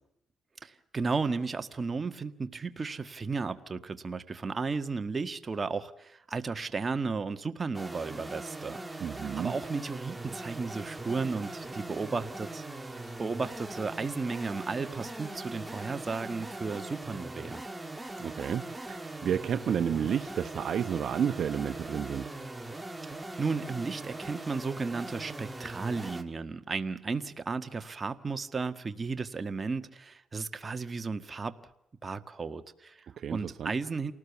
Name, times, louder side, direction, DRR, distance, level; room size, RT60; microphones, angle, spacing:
voice 1, 0.6-8.8 9.2-12.6 13.2-17.6 23.4-31.6 32.0-33.0 33.3-34.1, right 4 dB, 30° right, 9 dB, 1.7 m, -34 dB
sound 1, 7.7-26.2, right 2 dB, 10° right, 2.1 m, -41 dB
voice 2, 9.0-9.5 18.2-22.3 33.2-33.7, right 8 dB, 60° right, 10 dB, 1.0 m, -31 dB
29.0 x 19.0 x 7.1 m, 0.80 s
cardioid pair, 90°, 0 cm